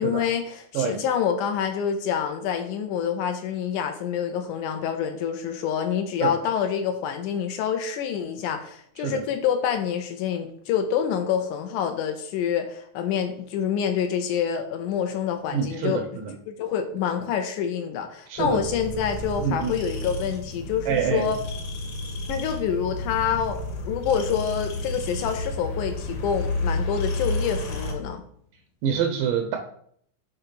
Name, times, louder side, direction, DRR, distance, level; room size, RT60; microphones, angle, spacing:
voice 1, 0.0-16.0 16.5-21.4 22.3-28.2, left 8 dB, 75° left, 6 dB, 2.0 m, -27 dB
voice 2, 15.5-16.3 18.3-18.6 19.4-19.8 20.9-21.3 28.8-29.6, right 8 dB, 80° right, 4 dB, 2.4 m, -26 dB
sound 1, 18.4-27.9, left 2 dB, 55° left, 1.8 m, -31 dB
6.6 x 3.5 x 5.7 m, 0.63 s
omnidirectional pair, 3.8 m